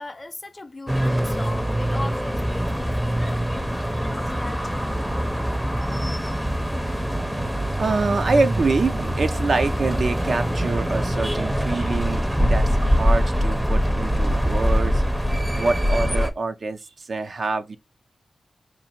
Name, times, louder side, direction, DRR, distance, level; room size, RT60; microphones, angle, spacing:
voice 1, 0.0-4.8, left 2 dB, 35° left, 0.6 m, -38 dB
sound 1, 0.9-16.3, equal, 5° right, 0.6 m, -23 dB
voice 2, 7.8-15.0 15.6-17.8, right 3 dB, 65° right, 0.5 m, -25 dB
4.0 x 2.4 x 2.8 m
cardioid pair, 60°, 0 cm